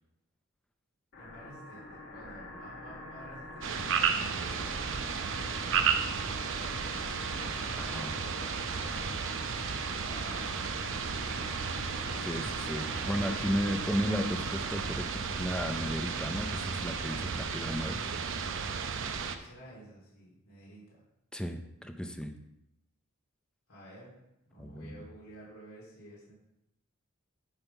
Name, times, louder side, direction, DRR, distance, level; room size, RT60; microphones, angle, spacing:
sound 1, 1.1-14.9, left 1 dB, 50° left, 1.3 m, -46 dB
voice 1, 1.2-6.0 6.4-9.1 9.8-11.1 19.4-21.0 23.7-24.1 24.5-26.3, right 1 dB, 70° left, -7 dB, 3.1 m, -51 dB
sound 2, 3.6-19.4, right 6 dB, 60° right, 0.7 m, -33 dB
voice 2, 7.8-8.2 12.2-18.0 21.3-22.3 24.6-25.0, equal, 5° left, 6 dB, 0.6 m, -34 dB
9.7 x 3.6 x 5.8 m, 0.86 s
head